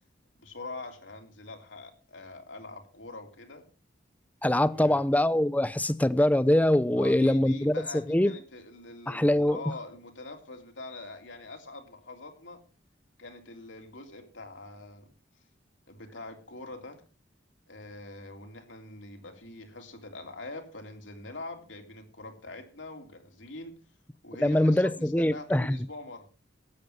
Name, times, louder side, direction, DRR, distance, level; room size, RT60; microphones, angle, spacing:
voice 1, 0.4-3.6 4.7-5.0 6.9-12.6 13.2-15.1 15.9-17.0 17.7-23.7 24.2-26.3, left 2 dB, 85° left, 3.2 m, -43 dB
voice 2, 4.4-7.8 8.1-8.3 9.1-9.6 24.4-25.8, left 1 dB, 10° left, 0.6 m, -23 dB
13.5 x 9.6 x 5.9 m
head